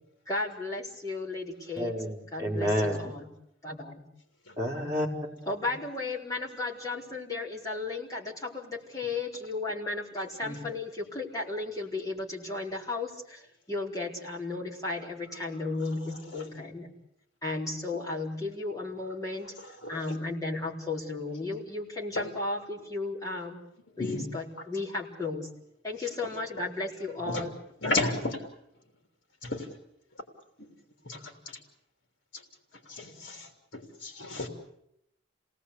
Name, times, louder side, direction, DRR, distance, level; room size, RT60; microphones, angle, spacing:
voice 1, 0.3-1.9 2.3-3.3 3.6-4.1 5.4-16.9 17.4-23.6 24.0-25.5 25.8-27.5 27.8-28.2, left 3 dB, 20° left, -4 dB, 4.1 m, -34 dB
voice 2, 1.8-3.1 4.6-5.4, equal, 15° right, -2 dB, 4.9 m, -30 dB
voice 3, 27.8-28.4 29.4-29.7 30.6-30.7 31.0-31.6 32.3-32.4 32.9-34.5, left 2 dB, 65° left, 4 dB, 3.3 m, -33 dB
28.5 x 18.5 x 8.3 m, 0.78 s
head